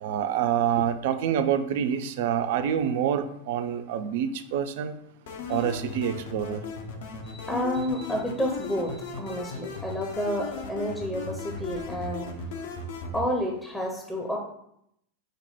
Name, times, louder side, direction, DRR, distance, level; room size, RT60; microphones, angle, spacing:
voice 1, 0.0-4.9 5.5-6.6, right 9 dB, 50° right, 9 dB, 0.4 m, -27 dB
sound 1, 5.3-13.2, left 4 dB, 55° left, 0.7 m, -37 dB
voice 2, 7.3-12.3 12.6-12.7 13.1-14.4, equal, 5° left, 0 dB, 0.7 m, -30 dB
5.1 x 2.1 x 4.3 m, 0.74 s
figure-of-eight pair, 90°, 0 cm